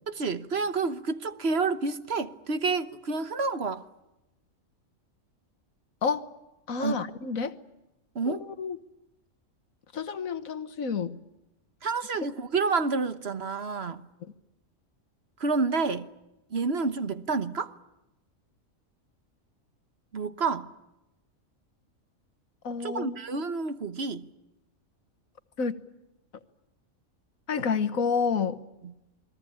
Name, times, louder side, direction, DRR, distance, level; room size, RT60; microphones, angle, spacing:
voice 1, 0.1-3.8 6.8-7.0 8.1-8.4 11.8-14.0 15.4-16.1 16.5-17.7 20.1-20.7 22.8-24.3 28.8-28.9, right 4 dB, 50° right, 1.4 m, -29 dB
voice 2, 6.7-7.5 8.3-8.8 9.9-11.2 22.6-23.2 25.6-25.7 27.5-28.6, left 5 dB, 85° left, 1.7 m, -29 dB
29.0 x 21.0 x 8.6 m
omnidirectional pair, 1.4 m